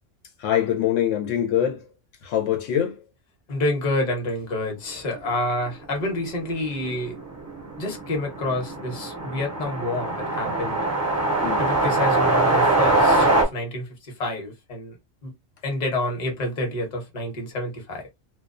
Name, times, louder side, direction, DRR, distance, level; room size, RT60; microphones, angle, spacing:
voice 1, 0.4-1.9 2.2-3.0 11.4-11.6, left 10 dB, 80° left, 1.0 m, -24 dB
voice 2, 3.5-7.2 7.8-10.8 11.6-15.0 15.2-15.3 15.6-18.0, left 1 dB, 40° left, 0.9 m, -28 dB
sound 1, 6.0-6.1 6.3-6.4 6.7-13.4, right 2 dB, 20° right, 0.4 m, -23 dB
2.3 x 2.1 x 2.5 m
omnidirectional pair, 1.3 m